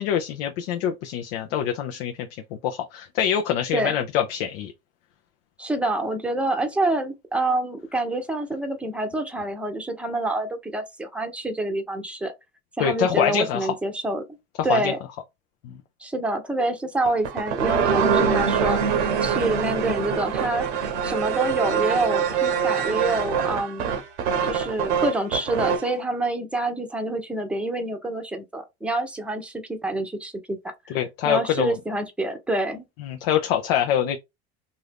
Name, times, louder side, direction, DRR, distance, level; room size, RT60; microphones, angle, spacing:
voice 1, 0.0-2.3 2.6-4.7 12.8-13.8 14.6-14.9 15.6-15.8 30.9-31.8 33.0-34.2, left 9 dB, 75° left, 0.6 m, -25 dB
voice 2, 5.6-12.3 12.8-14.2 14.6-15.0 16.0-18.8 19.2-20.6 21.0-23.9 24.4-30.6 31.2-32.8, right 2 dB, 5° right, 0.7 m, -27 dB
sound 1, 17.1-25.9, right 7 dB, 85° right, 0.8 m, -24 dB
2.7 x 2.5 x 3.3 m
supercardioid pair, 95°, 33 cm